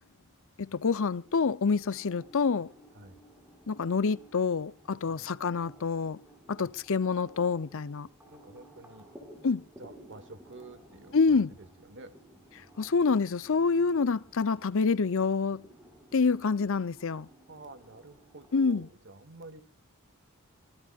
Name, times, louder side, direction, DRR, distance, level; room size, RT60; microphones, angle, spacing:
voice 1, 0.6-2.7 3.7-6.2 6.5-8.1 9.4-9.6 11.1-11.5 12.8-15.6 16.1-17.3 18.5-18.9, left 4 dB, 65° left, 0.7 m, -27 dB
sound 1, 0.7-18.7, right 1 dB, 10° right, 5.6 m, -56 dB
voice 2, 4.9-5.3 6.6-6.7 8.3-9.1 9.8-12.2 17.5-19.6, right 2 dB, 55° right, 2.1 m, -49 dB
25.5 x 19.5 x 2.5 m
head